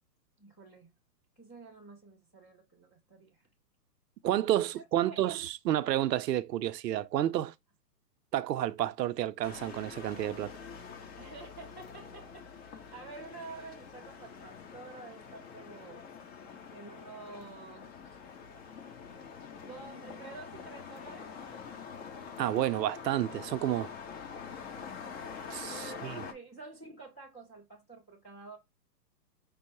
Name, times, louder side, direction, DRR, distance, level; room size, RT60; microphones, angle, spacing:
voice 1, 0.4-0.9 1.4-3.5 4.7-5.3 11.2-16.1 16.7-18.2 19.5-21.3 25.7-28.6, right 3 dB, 10° left, 0.4 m, -49 dB
voice 2, 4.2-7.5 8.3-10.5 22.4-23.9 25.5-26.2, right 13 dB, 75° right, 0.6 m, -30 dB
sound 1, 9.4-26.3, left 6 dB, 40° left, 1.1 m, -46 dB
5.4 x 2.0 x 4.2 m
hypercardioid pair, 145°, 50 cm